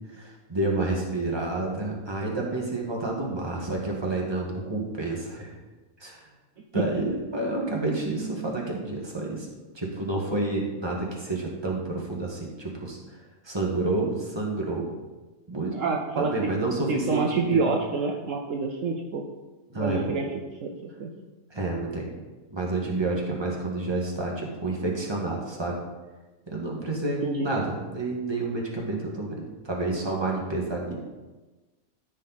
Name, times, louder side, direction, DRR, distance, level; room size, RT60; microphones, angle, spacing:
voice 1, 0.1-5.5 6.0-6.3 6.7-9.5 9.8-13.0 13.4-14.9 15.5-15.8 16.2-17.6 19.7-20.1 21.5-22.1 22.5-25.8 26.5-30.9, right 2 dB, 20° right, -2 dB, 1.7 m, -29 dB
voice 2, 15.7-16.3 16.9-19.2 19.8-20.3 20.6-20.7 21.0-21.1 27.2-27.5, right 4 dB, 65° right, 2 dB, 1.1 m, -27 dB
14.0 x 5.3 x 4.1 m, 1.2 s
omnidirectional pair, 1.5 m